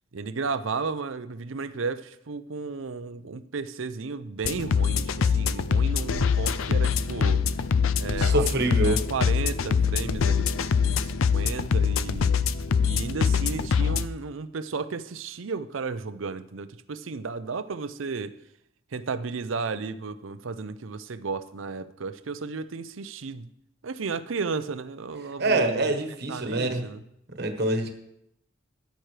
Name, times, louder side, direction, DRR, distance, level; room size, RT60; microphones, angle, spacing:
voice 1, 0.1-7.4 7.9-11.0 11.3-12.4 12.8-18.3 18.9-23.5 23.8-25.9 26.3-27.0, right 4 dB, 75° right, 12 dB, 0.6 m, -33 dB
sound 1, 4.4-14.1, left 6 dB, 90° left, 0.4 m, -24 dB
voice 2, 8.2-9.1 25.4-26.9 27.4-27.9, right 2 dB, 55° right, 5 dB, 1.3 m, -25 dB
13.5 x 10.5 x 3.3 m, 0.79 s
head